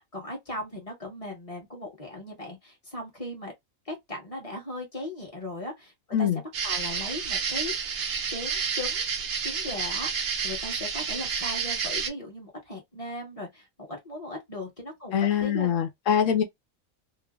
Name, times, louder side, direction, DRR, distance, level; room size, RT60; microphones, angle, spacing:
voice 1, 0.0-3.5 3.8-5.9 6.2-7.7 8.3-9.1 9.4-15.7, left 1 dB, 30° left, 1.2 m, -38 dB
sound 1, 6.5-12.1, right 6 dB, 60° right, 0.7 m, -30 dB
voice 2, 15.1-16.4, left 8 dB, 75° left, 1.1 m, -24 dB
3.0 x 2.0 x 2.3 m
omnidirectional pair, 1.4 m